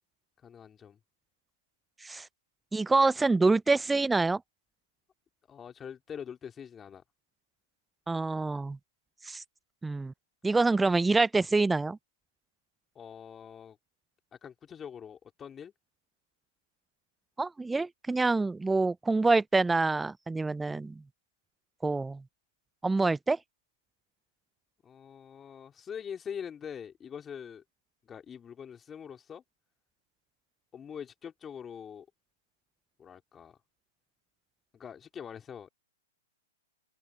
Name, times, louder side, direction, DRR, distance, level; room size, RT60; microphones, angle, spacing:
voice 1, 0.4-1.0 5.5-7.0 12.9-13.8 14.3-15.7 24.8-27.6 28.0-29.4 30.7-32.1 33.0-33.6 34.7-35.7, left 8 dB, 20° left, 3.1 m, -44 dB
voice 2, 2.7-4.4 8.1-8.8 9.2-9.4 9.8-10.1 10.4-12.0 17.4-21.0 21.8-22.2 22.8-23.4, right 3 dB, 10° right, 0.4 m, -26 dB
open air
hypercardioid pair, 120°, 0 cm